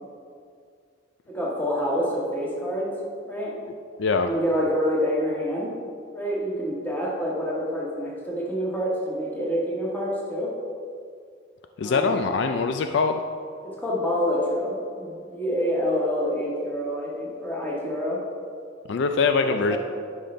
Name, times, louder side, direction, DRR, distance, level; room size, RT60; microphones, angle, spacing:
voice 1, 1.3-2.9 3.2-3.5 4.2-5.7 6.1-10.5 11.8-12.2 13.6-18.2 19.4-19.8, equal, 10° left, -5 dB, 1.5 m, -27 dB
voice 2, 4.0-4.3 11.8-13.2 18.9-19.8, left 4 dB, 60° left, 6 dB, 0.3 m, -23 dB
10.0 x 5.5 x 3.3 m, 2.2 s
head